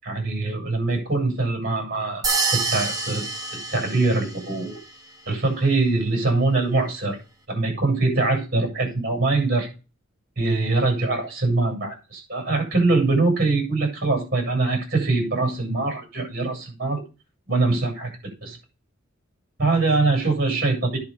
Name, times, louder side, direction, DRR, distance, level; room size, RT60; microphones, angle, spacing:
voice 1, 0.0-3.2 3.5-4.8 5.3-7.2 7.5-9.7 10.4-17.0 17.5-18.1 18.4-18.6 19.6-21.0, right 3 dB, 50° right, 3 dB, 7.8 m, -23 dB
sound 1, 2.2-4.5, right 3 dB, 15° right, 1.8 m, -26 dB
10.5 x 5.5 x 6.9 m, 0.31 s
head